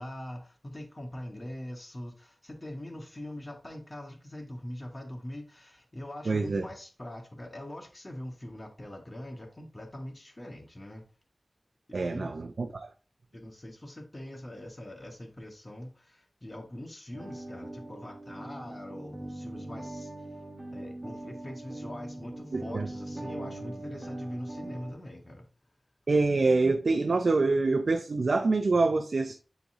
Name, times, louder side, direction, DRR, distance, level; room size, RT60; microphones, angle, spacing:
voice 1, 0.0-11.0 12.1-12.4 13.3-20.1 20.7-25.5, left 1 dB, 35° left, 1.7 m, -43 dB
voice 2, 6.3-6.6 11.9-12.9 22.5-22.9 26.1-29.3, right 3 dB, 80° right, 0.6 m, -26 dB
sound 1, 17.1-24.9, right 1 dB, 30° right, 2.1 m, -41 dB
7.1 x 4.2 x 3.6 m
wide cardioid pair, 50°, 0 cm